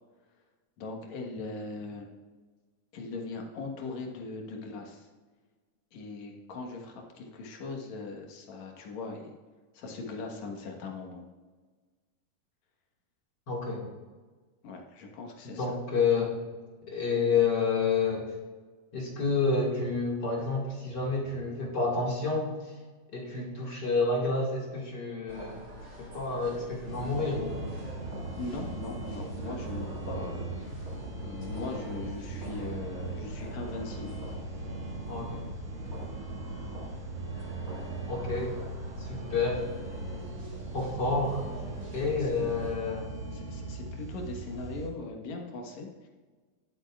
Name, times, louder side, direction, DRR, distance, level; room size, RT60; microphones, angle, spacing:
voice 1, 0.8-2.1 2.9-5.1 5.9-9.3 9.7-11.2 14.6-15.8 28.4-30.9 31.2-34.2 42.0-42.7 43.3-46.1, left 3 dB, 60° left, 1 dB, 2.5 m, -40 dB
voice 2, 13.5-13.8 15.4-16.3 16.9-18.3 18.9-22.5 23.1-25.7 26.0-27.7 35.1-35.4 38.1-38.5 39.0-39.7 40.7-41.4 41.9-43.1, left 4 dB, 35° left, -2 dB, 2.1 m, -29 dB
sound 1, 25.3-42.8, equal, 25° right, 2.9 m, -45 dB
sound 2, 26.8-44.9, right 2 dB, 45° right, 3.0 m, -39 dB
20.0 x 7.8 x 2.4 m, 1.4 s
omnidirectional pair, 3.9 m